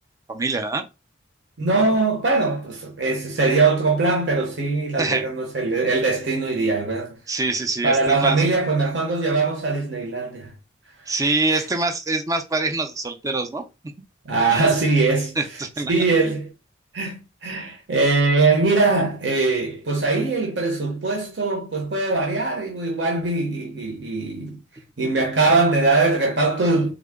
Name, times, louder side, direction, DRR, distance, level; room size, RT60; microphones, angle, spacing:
voice 1, 0.3-0.8 5.0-5.3 7.3-8.4 11.1-13.6 14.5-14.7 15.4-15.9, right 3 dB, 15° right, 0.4 m, -24 dB
voice 2, 1.6-7.2 7.8-10.5 11.5-11.6 14.2-15.3 15.9-16.5 16.9-24.6 25.0-26.9, right 3 dB, 60° right, 0.9 m, -21 dB
3.6 x 2.1 x 3.5 m
head